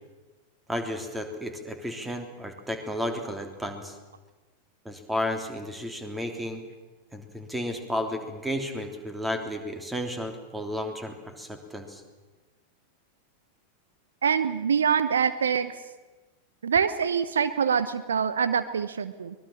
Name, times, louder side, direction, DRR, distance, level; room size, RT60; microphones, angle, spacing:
voice 1, 0.7-4.0 4.8-6.6 7.1-12.0, left 1 dB, 5° right, 5 dB, 3.2 m, -33 dB
voice 2, 14.2-15.8 16.6-19.3, right 7 dB, 70° right, 13 dB, 0.9 m, -25 dB
24.0 x 20.5 x 7.3 m, 1.2 s
figure-of-eight pair, 90°, 0 cm